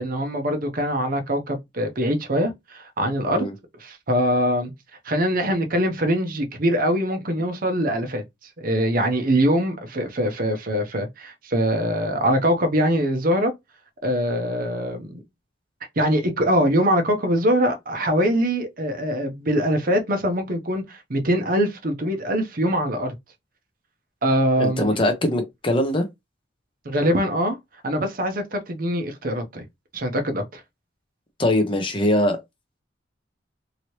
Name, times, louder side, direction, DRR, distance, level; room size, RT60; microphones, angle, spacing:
voice 1, 0.0-3.5 3.8-4.7 5.0-8.2 8.6-13.5 14.0-15.2 16.0-23.1 24.2-25.0 26.8-27.6 27.8-29.6 29.9-30.6, equal, 45° right, 0.7 m, -23 dB
voice 2, 24.6-26.0 31.4-32.4, left 1 dB, 25° left, 0.7 m, -21 dB
2.9 x 2.8 x 3.0 m
head